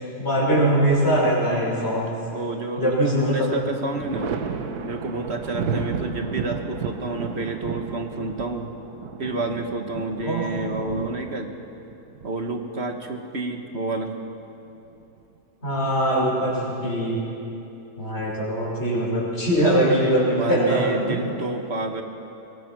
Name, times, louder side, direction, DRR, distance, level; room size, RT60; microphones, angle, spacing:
voice 1, 0.0-2.1 2.8-3.5 10.2-10.4 15.6-16.5 16.8-17.2 18.0-21.2, right 1 dB, 40° left, -6 dB, 6.2 m, -22 dB
voice 2, 2.3-4.4 4.8-8.7 9.2-11.5 12.2-14.1 20.3-22.0, right 3 dB, 45° right, 4 dB, 1.6 m, -29 dB
Thunder, 2.3-3.1 3.5-13.0 14.5-15.4, right 5 dB, 85° right, 1.6 m, -33 dB
23.5 x 19.5 x 6.2 m, 2.9 s
omnidirectional pair, 1.6 m